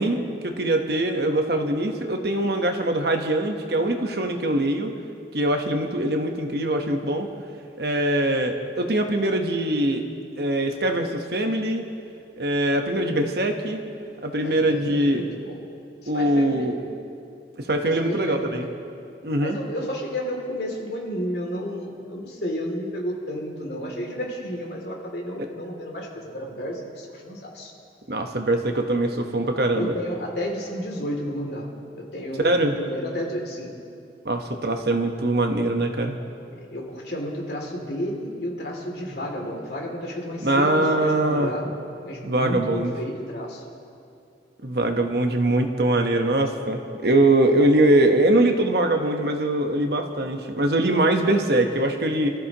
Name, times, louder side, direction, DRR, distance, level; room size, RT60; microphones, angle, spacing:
voice 1, 0.0-4.9 5.3-7.3 7.8-10.0 10.4-11.8 12.3-13.8 14.2-15.2 16.1-16.7 17.6-18.7 19.2-19.6 25.4-25.5 28.1-29.9 32.4-32.8 34.2-36.2 40.4-41.5 42.2-42.9 44.6-52.3, right 1 dB, 60° right, 4 dB, 1.2 m, -22 dB
voice 2, 14.4-15.6 16.1-16.7 17.8-18.7 19.4-27.7 29.7-33.7 36.5-41.7 42.0-43.6, equal, 65° left, -1 dB, 2.7 m, -32 dB
26.5 x 14.0 x 3.0 m, 2.5 s
head